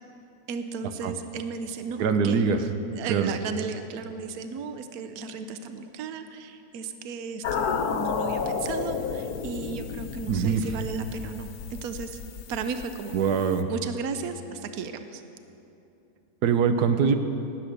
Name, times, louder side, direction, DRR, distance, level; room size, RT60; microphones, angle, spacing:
voice 1, 0.5-2.4 2.9-12.2 12.5-13.1 13.7-15.2, right 5 dB, 70° right, 8 dB, 1.2 m, -35 dB
voice 2, 2.0-2.6 3.1-3.3 10.3-10.6 13.1-13.7 16.4-17.2, right 6 dB, 90° right, 8 dB, 1.3 m, -23 dB
sound 1, 7.4-13.6, left 6 dB, 75° left, 1.3 m, -32 dB
19.0 x 8.6 x 6.5 m, 2.8 s
omnidirectional pair, 1.7 m